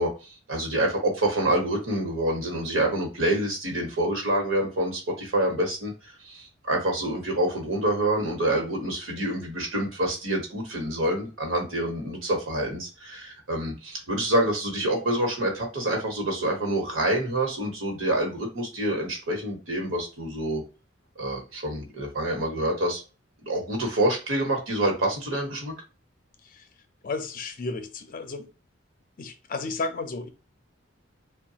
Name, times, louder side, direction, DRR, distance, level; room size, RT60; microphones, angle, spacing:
voice 1, 0.0-20.6 21.2-23.0 23.5-25.7, right 1 dB, 85° right, 1.1 m, -27 dB
voice 2, 27.0-28.5 29.2-30.3, left 3 dB, 45° left, 0.4 m, -33 dB
3.1 x 2.2 x 2.8 m
head